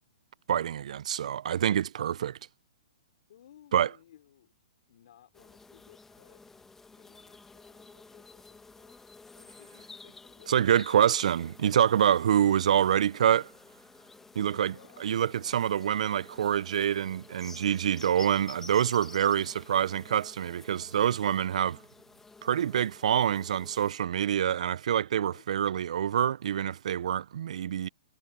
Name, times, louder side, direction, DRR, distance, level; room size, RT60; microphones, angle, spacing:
voice 1, 0.5-2.4 3.7-3.9 10.5-13.5 14.4-14.7 15.0-21.8 22.4-27.9, right 9 dB, 70° right, 0.5 m, -26 dB
voice 2, 3.3-4.5 4.9-6.4 7.0-8.9 9.3-10.7 14.4-15.6 17.5-17.8 25.1-25.4, left 11 dB, 65° left, 3.4 m, -59 dB
sound 1, 5.3-23.9, left 3 dB, 10° left, 1.2 m, -52 dB
hypercardioid pair, 130°, 4 cm